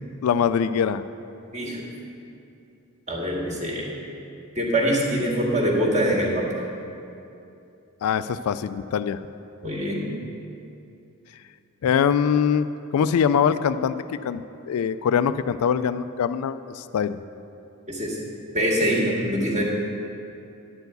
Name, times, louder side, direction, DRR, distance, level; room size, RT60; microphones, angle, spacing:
voice 1, 0.2-1.0 8.0-9.2 11.8-12.7 12.9-17.2, left 7 dB, 80° left, 13 dB, 0.3 m, -23 dB
voice 2, 3.1-3.9 4.6-6.5 9.6-10.0 17.9-18.2 18.5-19.6, equal, 30° right, -4 dB, 1.8 m, -24 dB
10.5 x 4.6 x 8.0 m, 2.7 s
head